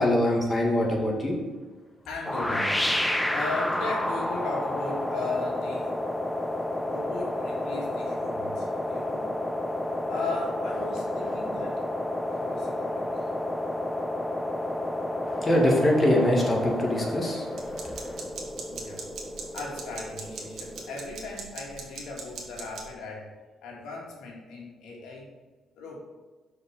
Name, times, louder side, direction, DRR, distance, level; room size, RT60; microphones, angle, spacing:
voice 1, 0.0-1.4 15.2-18.2, left 1 dB, 25° left, -1 dB, 2.1 m, -24 dB
voice 2, 2.1-3.0 3.3-6.0 6.8-9.4 10.1-11.9 12.3-13.3 18.7-19.1 19.5-23.3 23.6-25.3 25.8-26.0, left 3 dB, 85° left, -1 dB, 2.0 m, -37 dB
sound 1, 2.2-21.1, left 1 dB, 10° left, 0.6 m, -31 dB
sound 2, 17.6-22.9, right 5 dB, 70° right, 1.5 m, -40 dB
6.2 x 5.0 x 5.8 m, 1.3 s
cardioid pair, 90°, 0 cm